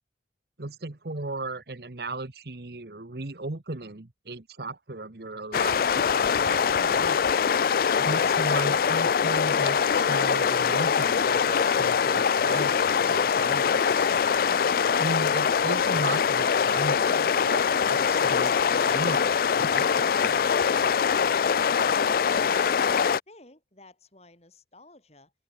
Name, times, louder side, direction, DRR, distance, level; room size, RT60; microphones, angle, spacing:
voice 1, 0.6-7.2 8.0-14.1 15.0-20.5, right 2 dB, 60° right, 1.2 m, -36 dB
sound 1, 5.5-23.2, left 6 dB, 50° left, 0.3 m, -23 dB
voice 2, 22.3-25.3, left 2 dB, 35° left, 6.1 m, -52 dB
head